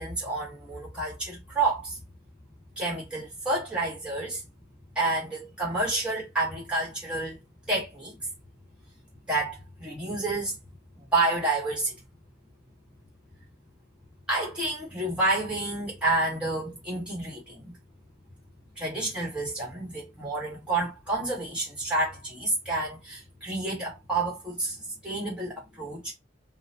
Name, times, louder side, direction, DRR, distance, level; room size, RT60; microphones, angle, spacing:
voice 1, 0.0-2.0 2.8-4.4 4.9-7.4 7.7-8.3 9.3-10.6 11.0-12.0 14.3-17.8 18.7-26.1, right 2 dB, 5° right, 1.4 m, -29 dB
3.9 x 2.3 x 2.9 m
head